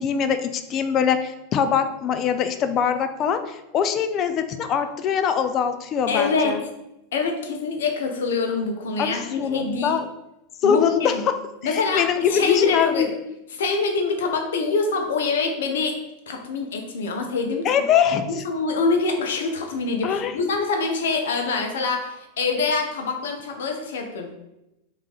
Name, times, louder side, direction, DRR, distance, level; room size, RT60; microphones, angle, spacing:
voice 1, 0.0-6.6 9.0-10.0 10.6-11.3 11.6-13.1 17.6-18.4 20.0-20.3, left 7 dB, 40° left, 9 dB, 0.5 m, -23 dB
voice 2, 6.1-6.6 7.1-9.9 10.6-11.2 11.6-13.1 13.6-16.0 16.3-17.8 18.3-24.3, left 4 dB, 80° left, 3 dB, 0.8 m, -25 dB
3.6 x 3.2 x 4.0 m, 0.90 s
hypercardioid pair, 105°, 0 cm